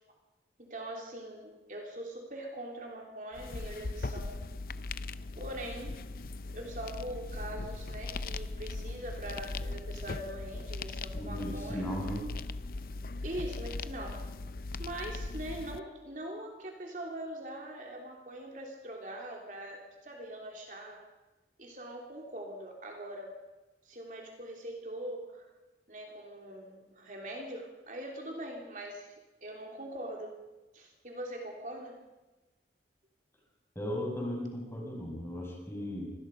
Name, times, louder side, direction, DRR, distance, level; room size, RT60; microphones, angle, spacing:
voice 1, 0.6-4.4 5.4-6.0 6.5-11.9 13.2-14.2 14.8-21.0 21.6-23.4 23.8-25.5 25.9-29.1 29.4-30.4 30.7-32.0, right 1 dB, 45° right, 1 dB, 3.3 m, -42 dB
sound 1, 3.3-15.8, left 3 dB, 50° left, 0.6 m, -39 dB
voice 2, 11.1-12.3 33.7-36.1, equal, 15° left, -1 dB, 6.5 m, -36 dB
25.5 x 19.5 x 5.4 m, 1.1 s
head